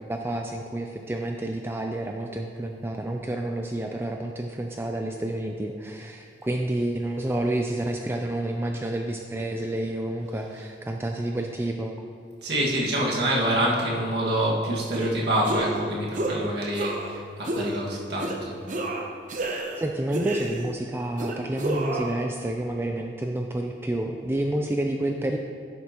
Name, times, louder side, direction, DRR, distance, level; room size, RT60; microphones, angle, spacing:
voice 1, 0.1-11.9 19.5-25.4, right 1 dB, 15° right, 3 dB, 0.3 m, -29 dB
voice 2, 12.4-18.6, right 1 dB, 65° right, -4 dB, 1.8 m, -26 dB
sound 1, 14.9-15.1 15.4-15.8 16.1-16.4 16.7-17.1 17.5-17.7 18.2-18.4 18.7-19.8 20.1-20.8 21.2-22.1, right 2 dB, 45° right, 0.8 m, -30 dB
11.0 x 8.0 x 2.9 m, 2.4 s
head